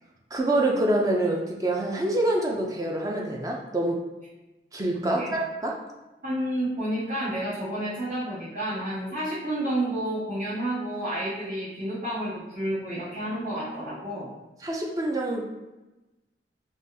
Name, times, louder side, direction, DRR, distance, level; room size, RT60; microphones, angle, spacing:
voice 1, 0.3-4.1 4.7-5.8 14.6-15.4, right 1 dB, 20° right, -1 dB, 0.3 m, -26 dB
voice 2, 5.0-5.3 6.2-14.3, right 1 dB, 55° right, -16 dB, 1.5 m, -30 dB
3.7 x 2.3 x 2.6 m, 1.1 s
head